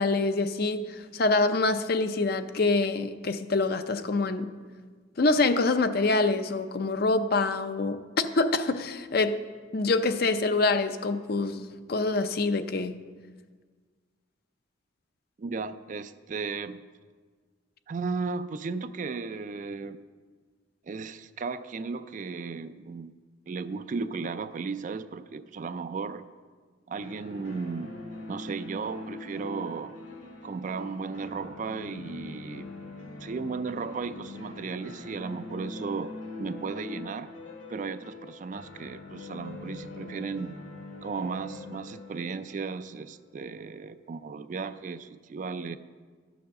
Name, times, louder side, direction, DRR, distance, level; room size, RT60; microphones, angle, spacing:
voice 1, 0.0-4.5 5.2-9.4 9.7-13.0, left 3 dB, 50° left, 10 dB, 0.5 m, -26 dB
voice 2, 15.4-16.9 17.9-20.0 20.8-23.1 23.5-26.3 26.9-27.9 28.3-30.0 30.4-32.7 33.2-37.3 37.7-40.6 41.0-45.8, right 4 dB, 40° right, 12 dB, 0.3 m, -35 dB
sound 1, 27.0-43.7, left 3 dB, 70° left, 2.1 m, -43 dB
12.0 x 7.0 x 6.4 m, 1.5 s
head